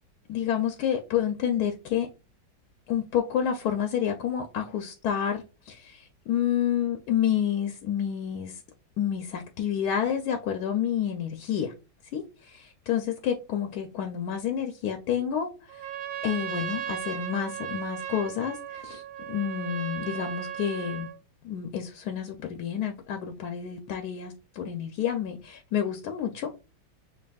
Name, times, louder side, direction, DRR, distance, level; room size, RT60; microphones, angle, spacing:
voice 1, 0.3-2.1 2.9-8.6 9.0-11.7 12.1-15.8 16.2-21.1 21.4-26.6, left 9 dB, 75° left, 0.9 m, -29 dB
Trumpet, 15.7-21.2, right 10 dB, 80° right, 1.3 m, -36 dB
6.0 x 2.3 x 2.3 m
omnidirectional pair, 2.1 m